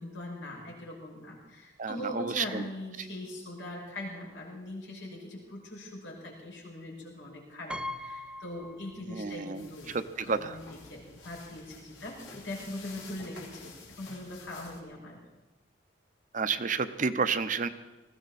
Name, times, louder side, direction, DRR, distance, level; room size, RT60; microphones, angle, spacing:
voice 1, 0.0-10.0 10.2-15.2, left 1 dB, 90° left, -3 dB, 5.8 m, -41 dB
voice 2, 1.8-2.6 9.1-10.6 16.3-17.7, right 5 dB, 45° right, 11 dB, 0.7 m, -31 dB
Piano, 7.7-9.5 9.8-9.9 11.1-11.2 11.5-11.7, left 1 dB, 5° right, 0.4 m, -41 dB
sound 1, 9.5-14.8, left 3 dB, 70° left, 3.4 m, -50 dB
20.0 x 16.0 x 4.2 m, 1.1 s
head